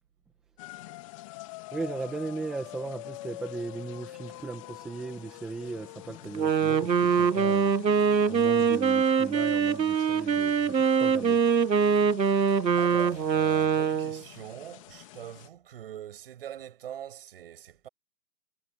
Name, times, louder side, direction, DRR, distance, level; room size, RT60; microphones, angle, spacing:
sound 1, 0.6-15.5, left 18 dB, 20° left, 2.9 m, -46 dB
voice 1, 1.7-7.8 8.3-11.4, right 3 dB, ahead, 1.0 m, -37 dB
Wind instrument woodwind instrument, 6.2-14.2, right 6 dB, 90° right, 1.5 m, -23 dB
voice 2, 12.8-17.9, right 11 dB, 35° right, 7.1 m, -43 dB
hypercardioid pair, 160°, 49 cm